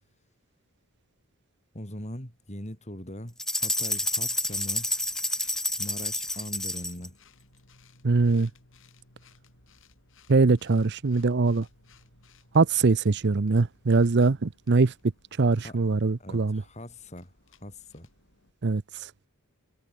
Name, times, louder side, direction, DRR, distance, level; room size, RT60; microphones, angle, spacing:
voice 1, 1.7-4.9 5.8-7.2 15.6-15.8 16.2-17.3 17.6-18.1, left 1 dB, 30° left, 5.4 m, -41 dB
sound 1, 3.4-7.1, left 1 dB, ahead, 0.4 m, -29 dB
sound 2, 4.1-18.5, left 3 dB, 60° left, 6.8 m, -60 dB
voice 2, 8.0-8.5 10.3-11.7 12.5-14.9 15.4-16.6 18.6-18.8, right 3 dB, 50° right, 0.6 m, -22 dB
head